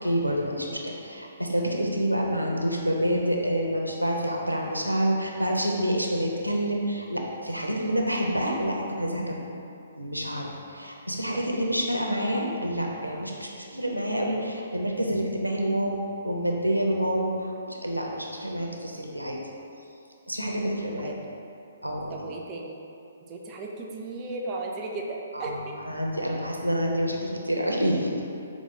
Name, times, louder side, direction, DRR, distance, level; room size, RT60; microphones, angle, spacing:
voice 1, 0.0-9.5 10.0-19.4 20.3-21.1 21.8-22.1 25.3-25.6 25.8-28.3, equal, 90° right, -1 dB, 0.4 m, -28 dB
voice 2, 22.1-22.8 23.3-25.8, right 2 dB, 25° right, -1 dB, 0.3 m, -35 dB
4.7 x 2.0 x 3.0 m, 2.7 s
figure-of-eight pair, 130°, 0 cm